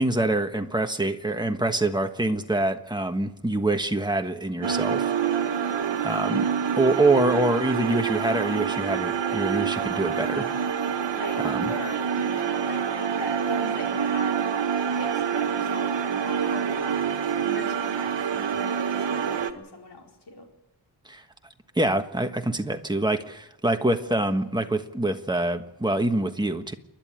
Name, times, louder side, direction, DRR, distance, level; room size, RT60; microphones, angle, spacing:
voice 1, 0.0-5.1 6.0-6.5 6.7-10.5 11.4-11.6 21.0-21.2 21.7-26.7, right 2 dB, 10° right, 6 dB, 1.4 m, -25 dB
sound 1, 4.6-19.5, right 7 dB, 70° right, 1.7 m, -26 dB
voice 2, 11.1-12.9 13.2-14.4 15.0-17.1 17.4-20.5, left 2 dB, 65° left, 1 dB, 4.5 m, -39 dB
29.0 x 11.5 x 9.1 m, 0.94 s
wide cardioid pair, 115°, 44 cm